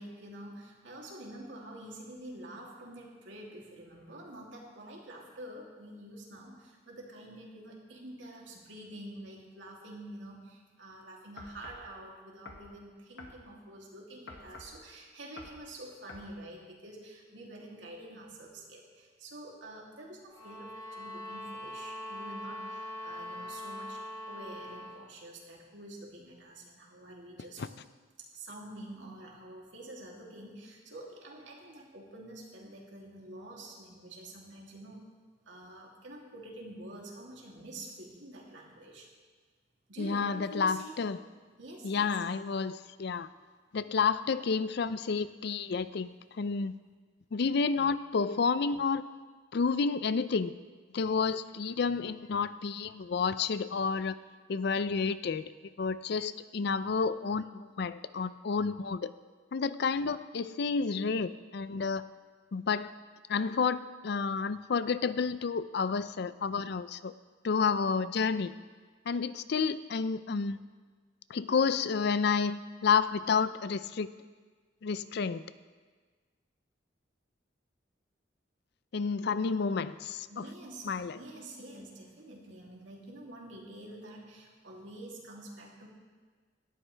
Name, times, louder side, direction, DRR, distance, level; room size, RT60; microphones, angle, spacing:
voice 1, 0.0-24.0 24.3-27.6 28.2-35.0 35.5-39.1 39.9-41.0 41.6-42.1 43.8-43.9 80.3-85.9, right 1 dB, 80° right, -2 dB, 2.9 m, -47 dB
sound 1, 11.4-11.9 12.5-12.7 13.2-13.4 14.3-14.8 15.4-15.6 16.1-16.3, left 2 dB, 85° left, 1.6 m, -48 dB
sound 2, 20.3-25.0, left 1 dB, 20° left, 4.6 m, -42 dB
voice 2, 40.0-41.2 41.8-43.3 43.7-46.7 47.3-49.0 49.5-50.5 50.9-54.1 54.5-55.5 55.8-59.1 59.5-62.1 62.5-62.9 63.3-67.1 67.4-68.5 69.1-70.6 71.3-74.1 74.8-75.4 78.9-80.3 80.9-81.2, left 5 dB, 60° left, 15 dB, 0.5 m, -30 dB
17.5 x 12.5 x 3.4 m, 1.5 s
head